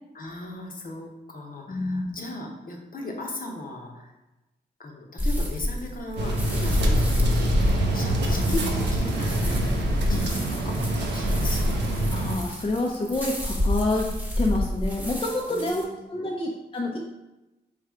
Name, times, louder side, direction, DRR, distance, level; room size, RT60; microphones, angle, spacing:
voice 1, 0.1-4.1 4.8-9.6 10.1-11.8 15.5-15.9 16.2-16.3, left 2 dB, 55° left, 1 dB, 0.9 m, -37 dB
voice 2, 1.7-2.2 10.1-10.3 12.1-14.1 14.4-17.0, left 2 dB, 30° left, -1 dB, 0.6 m, -28 dB
sound 1, 5.2-15.8, left 1 dB, 10° right, 1.0 m, -28 dB
sound 2, 6.2-12.4, right 1 dB, 80° right, 0.6 m, -26 dB
3.3 x 2.4 x 4.4 m, 0.99 s
cardioid pair, 50°, 18 cm